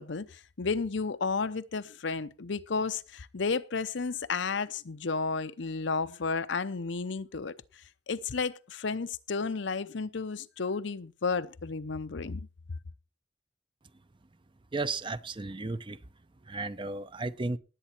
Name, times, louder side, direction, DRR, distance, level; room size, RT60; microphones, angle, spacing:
voice 1, 0.0-7.5 8.1-12.5, left 4 dB, 70° left, 0.7 m, -32 dB
voice 2, 14.7-16.0 16.5-17.6, right 3 dB, 25° right, 0.6 m, -34 dB
19.0 x 8.4 x 4.4 m
head